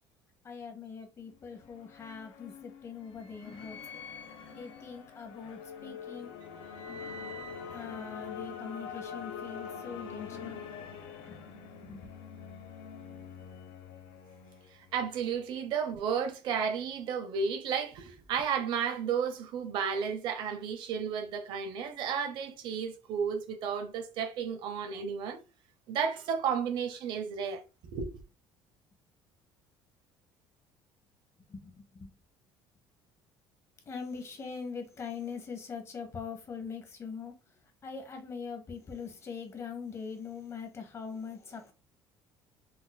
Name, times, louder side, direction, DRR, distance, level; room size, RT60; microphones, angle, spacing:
voice 1, 0.4-3.8 4.5-6.4 7.7-10.6 11.3-11.4 11.8-12.1 31.5-32.1 33.9-37.3 37.8-41.7, left 5 dB, 30° left, 0.8 m, -42 dB
sound 1, 1.3-15.1, left 6 dB, 85° left, 0.7 m, -44 dB
voice 2, 14.9-25.4 25.9-27.6 27.9-28.2, right 7 dB, 65° right, 0.6 m, -33 dB
4.0 x 2.5 x 2.2 m
cardioid pair, 140°, 9 cm